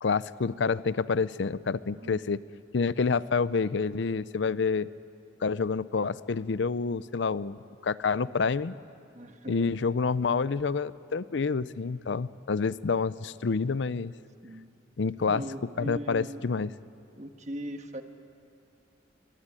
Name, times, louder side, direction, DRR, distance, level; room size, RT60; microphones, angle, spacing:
voice 1, 0.0-2.4 2.7-4.9 5.4-7.6 7.8-8.7 9.5-14.1 15.0-15.4 15.8-16.7, left 5 dB, 65° left, 17 dB, 0.5 m, -28 dB
voice 2, 2.0-2.3 9.1-9.8 14.4-14.7 15.3-16.5 17.2-18.0, equal, 35° right, 6 dB, 1.5 m, -39 dB
23.0 x 20.5 x 10.0 m, 2.5 s
head